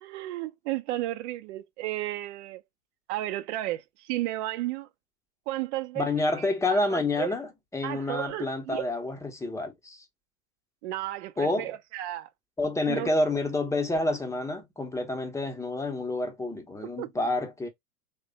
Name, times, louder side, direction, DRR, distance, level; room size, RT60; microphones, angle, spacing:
voice 1, 0.0-2.6 3.1-4.9 5.5-6.1 6.4-7.3 7.8-8.9 10.8-12.3 12.9-13.1 17.0-17.1, right 15 dB, 55° right, 0.6 m, -33 dB
voice 2, 5.9-10.0 11.4-11.7 12.6-17.7, left 2 dB, 5° left, 0.8 m, -29 dB
3.3 x 2.2 x 3.9 m
figure-of-eight pair, 90°, 44 cm